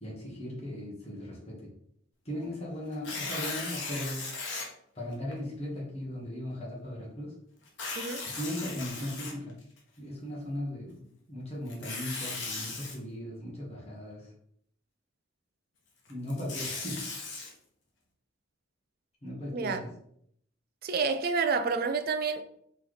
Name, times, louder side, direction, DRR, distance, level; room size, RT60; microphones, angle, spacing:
voice 1, 0.0-1.7 2.2-4.2 4.9-7.3 8.2-9.6 10.0-14.3 16.1-17.0 19.2-19.9, left 1 dB, 30° left, 1.4 m, -38 dB
Tearing, 2.9-4.7 5.3-5.4 7.7-9.8 11.7-13.0 16.1-17.5, left 3 dB, 65° left, 1.1 m, -37 dB
voice 2, 20.8-22.4, right 4 dB, 50° right, 0.4 m, -29 dB
4.1 x 3.2 x 4.0 m
head